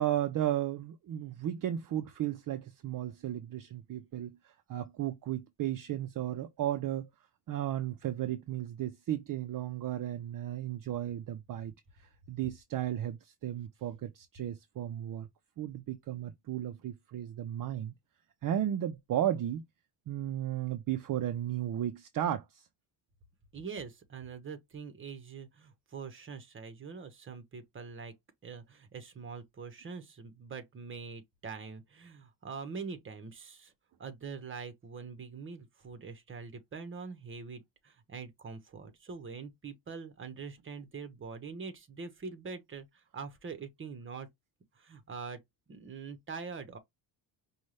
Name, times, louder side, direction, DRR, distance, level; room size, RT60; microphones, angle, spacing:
voice 1, 0.0-7.1 7.5-15.3 15.6-17.9 18.4-19.6 20.1-22.7, right 11 dB, 50° right, 0.5 m, -34 dB
voice 2, 23.5-28.1 28.4-33.7 34.0-44.3 44.7-45.4 45.7-46.8, right 5 dB, 30° right, 0.9 m, -44 dB
5.3 x 2.3 x 3.1 m
cardioid pair, 155°, 43 cm